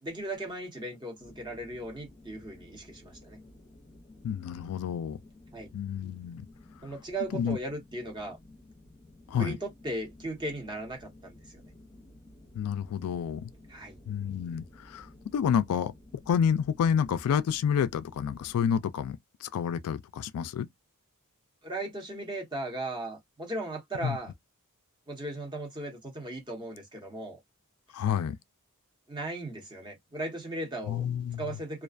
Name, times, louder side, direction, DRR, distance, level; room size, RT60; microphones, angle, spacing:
voice 1, 0.0-3.4 5.5-5.7 6.8-8.4 9.4-11.6 13.7-14.0 21.6-24.3 25.1-27.4 29.1-31.0 31.4-31.8, right 1 dB, 20° right, 1.0 m, -37 dB
sound 1, 1.2-18.7, left 1 dB, 25° left, 0.7 m, -54 dB
voice 2, 4.2-5.2 5.7-6.5 7.3-7.6 9.3-9.6 12.5-13.5 14.1-15.9 16.3-20.7 24.0-24.2 27.9-28.4 30.9-31.6, left 8 dB, 75° left, 0.3 m, -29 dB
2.4 x 2.2 x 2.4 m
head